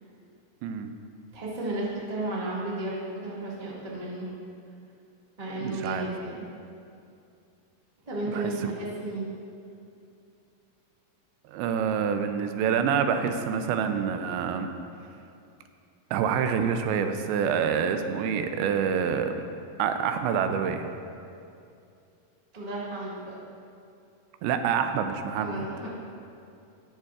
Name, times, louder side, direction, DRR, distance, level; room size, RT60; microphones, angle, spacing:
voice 1, 0.6-0.9 5.6-6.1 8.3-8.7 11.5-14.7 16.1-19.4 19.8-20.9 24.4-25.7, right 7 dB, 85° right, 7 dB, 2.5 m, -27 dB
voice 2, 1.3-4.3 5.4-6.4 8.1-9.3 22.5-23.4 25.4-25.9, right 2 dB, 35° right, -7 dB, 0.5 m, -33 dB
18.0 x 6.6 x 2.4 m, 2.5 s
omnidirectional pair, 4.3 m